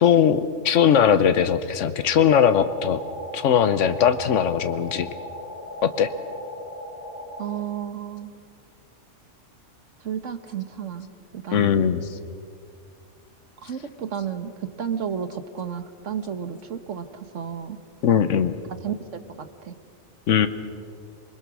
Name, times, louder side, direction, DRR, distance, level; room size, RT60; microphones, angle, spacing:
voice 1, 0.0-3.0 3.3-5.1 5.8-6.1 11.5-12.2 18.0-18.5 20.3-20.5, left 8 dB, 85° left, 11 dB, 1.2 m, -19 dB
sound 1, 2.3-7.5, equal, 25° right, 7.0 m, -38 dB
voice 2, 7.4-8.3 10.0-11.1 11.3-11.8 13.6-17.8 18.8-19.8, right 8 dB, 85° right, 10 dB, 1.5 m, -32 dB
27.0 x 20.5 x 6.2 m, 2.3 s
omnidirectional pair, 1.2 m